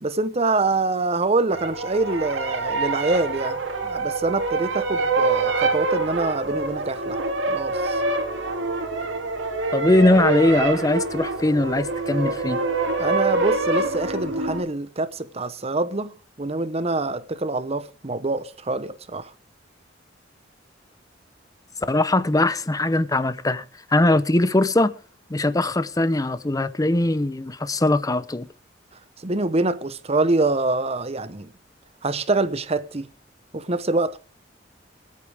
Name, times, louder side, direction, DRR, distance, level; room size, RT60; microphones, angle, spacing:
voice 1, 0.0-7.2 7.5-8.0 13.0-19.3 29.2-31.5 32.0-33.1 33.5-34.2, right 2 dB, 35° right, 0.9 m, -25 dB
sound 1, 1.5-14.6, right 3 dB, 90° right, 2.4 m, -25 dB
voice 2, 9.7-12.6 21.9-23.6 23.9-24.9 25.3-28.5, left 2 dB, 20° left, 0.7 m, -20 dB
24.5 x 8.5 x 3.5 m
head